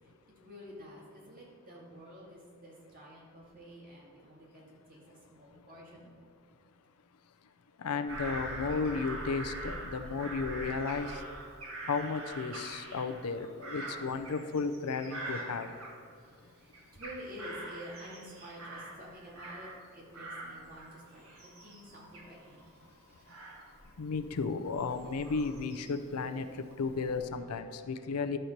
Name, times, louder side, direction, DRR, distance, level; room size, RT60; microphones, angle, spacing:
voice 1, 0.0-6.3 16.5-22.7, equal, 40° right, -4 dB, 2.2 m, -50 dB
voice 2, 7.8-11.2 11.9-15.7 24.0-26.5 26.8-28.4, left 4 dB, 90° left, 10 dB, 0.5 m, -34 dB
Bird vocalization bird call bird song / Crow, 8.1-16.4 16.7-19.9 20.1-26.2 26.7-27.2, right 1 dB, 65° right, 1.7 m, -44 dB
11.0 x 4.4 x 6.5 m, 2.1 s
head